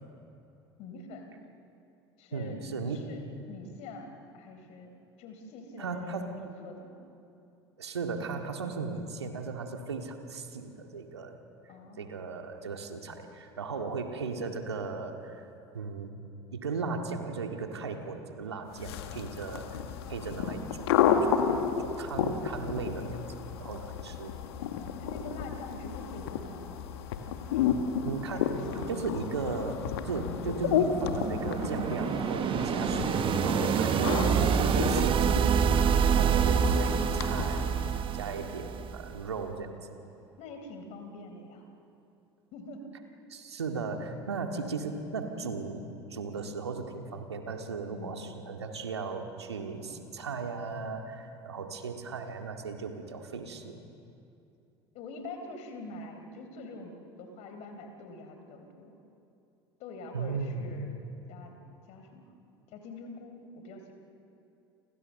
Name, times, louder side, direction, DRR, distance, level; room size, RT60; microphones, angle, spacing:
voice 1, 0.8-1.4 2.2-2.6 2.9-4.9 5.2-7.0 11.7-12.2 24.9-26.9 27.5-27.9 28.3-29.1 33.8-34.2 40.4-41.7 42.5-42.9 47.9-48.4 54.9-59.0 59.8-60.9 61.3-61.5 61.9-62.2 62.7-63.9, left 2 dB, 55° left, 5 dB, 4.4 m, -45 dB
voice 2, 2.3-3.1 5.8-6.3 7.8-11.4 12.0-15.5 15.7-16.1 16.5-19.8 20.1-20.9 21.2-21.5 21.8-23.3 23.6-24.3 28.1-33.1 33.4-39.8 43.3-45.8 46.1-53.8 60.1-60.8, right 4 dB, 85° right, 4 dB, 2.1 m, -37 dB
sound 1, 18.7-38.0, left 7 dB, 70° left, 1.8 m, -32 dB
sound 2, 30.3-39.2, right 8 dB, 40° right, 1.4 m, -27 dB
30.0 x 25.5 x 6.8 m, 2.7 s
figure-of-eight pair, 65°, 14 cm